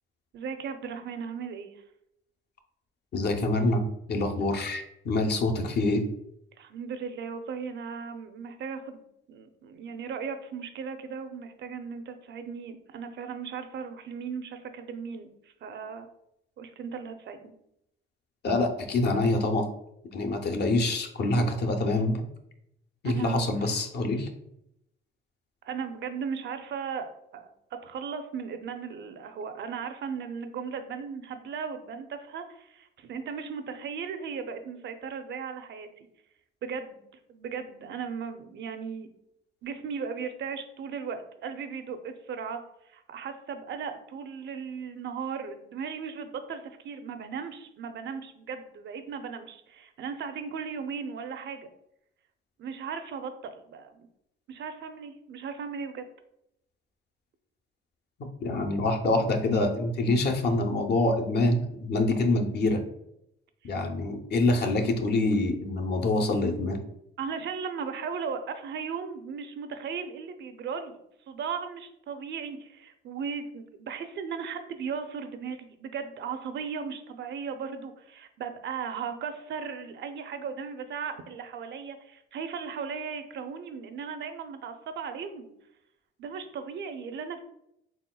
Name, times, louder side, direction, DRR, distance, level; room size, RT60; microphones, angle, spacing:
voice 1, 0.3-1.7 6.6-16.1 16.6-17.5 23.0-23.9 25.6-27.5 27.8-36.1 36.6-37.0 37.3-39.1 39.6-42.6 42.8-51.7 52.6-54.1 54.5-56.0 63.6-63.7 67.2-71.0 71.3-85.5 86.2-87.4, right 6 dB, 65° right, 8 dB, 0.6 m, -37 dB
voice 2, 3.1-3.8 4.1-6.0 18.4-19.7 20.1-22.2 23.0-24.3 58.4-62.8 63.7-66.8, left 2 dB, 55° left, 5 dB, 0.7 m, -26 dB
4.2 x 3.7 x 2.3 m, 0.78 s
cardioid pair, 90°, 20 cm